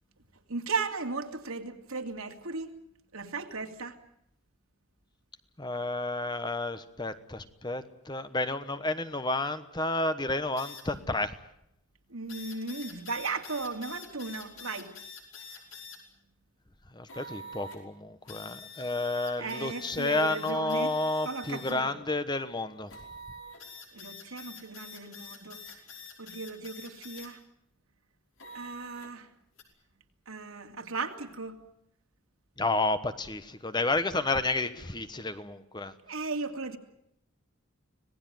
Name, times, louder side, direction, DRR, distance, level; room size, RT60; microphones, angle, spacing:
voice 1, 0.5-2.7 3.1-4.0 12.1-14.9 19.4-20.9 21.2-22.0 23.9-25.7 26.2-27.4 28.5-29.3 30.3-31.6 36.1-36.8, right 4 dB, 85° right, 2.8 m, -36 dB
voice 2, 5.6-11.4 16.9-22.9 32.6-35.9, left 2 dB, 20° left, 1.1 m, -31 dB
sound 1, 10.6-10.8 12.3-16.0 17.1-17.8 18.3-21.7 22.9-27.3 28.4-29.1 29.6-29.7, left 3 dB, 65° left, 5.1 m, -46 dB
25.5 x 18.5 x 9.3 m
head